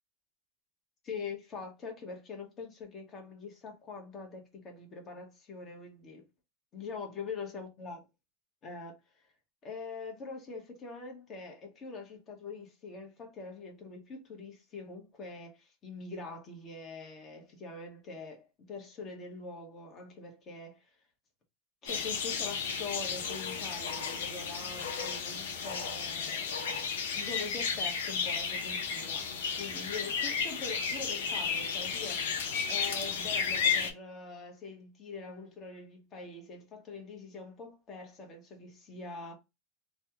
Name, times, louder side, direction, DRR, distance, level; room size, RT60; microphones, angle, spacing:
voice 1, 1.0-6.3 6.7-8.0 8.6-9.2 9.6-20.9 21.8-26.5 27.1-39.3, left 4 dB, 35° left, 1.2 m, -44 dB
sound 1, 21.9-33.9, left 6 dB, 90° left, 0.7 m, -33 dB
3.3 x 2.3 x 2.8 m
supercardioid pair, 120°, 0 cm